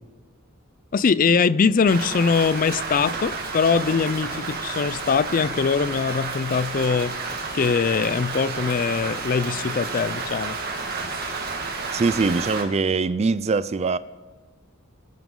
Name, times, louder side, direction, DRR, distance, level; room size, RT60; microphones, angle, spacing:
voice 1, 0.9-7.2 7.5-10.6, left 5 dB, 40° left, 0.4 m, -22 dB
Rain, 1.9-12.6, right 4 dB, 45° right, 2.1 m, -31 dB
voice 2, 11.9-14.0, right 4 dB, 30° right, 0.4 m, -22 dB
24.0 x 11.0 x 3.8 m
head